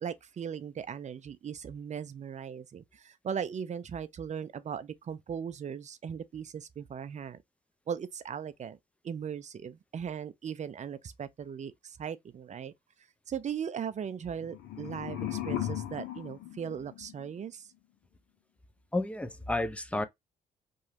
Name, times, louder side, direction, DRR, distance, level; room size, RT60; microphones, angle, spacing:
voice 1, 0.0-7.4 7.9-8.8 9.0-12.7 13.3-17.7, right 7 dB, 40° right, 0.5 m, -38 dB
sound 1, 14.3-17.4, left 12 dB, 85° left, 0.7 m, -37 dB
voice 2, 18.9-20.0, left 2 dB, 5° left, 0.6 m, -31 dB
2.9 x 2.3 x 2.7 m
supercardioid pair, 55°, 18 cm